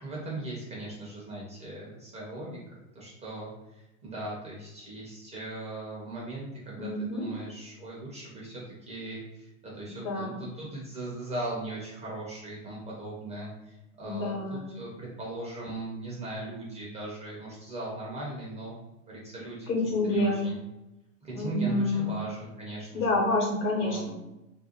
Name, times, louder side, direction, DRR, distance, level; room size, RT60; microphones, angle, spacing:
voice 1, 0.0-2.6 2.9-18.8 19.1-19.7 20.0-20.6 21.2-23.2 23.8-24.1, right 2 dB, 15° right, -5 dB, 0.5 m, -39 dB
voice 2, 6.8-7.3 10.0-10.4 14.0-14.7 19.7-20.5 21.3-22.1 22.9-24.1, left 2 dB, 60° left, -1 dB, 1.1 m, -28 dB
2.6 x 2.1 x 2.8 m, 0.94 s
hypercardioid pair, 100°, 45 cm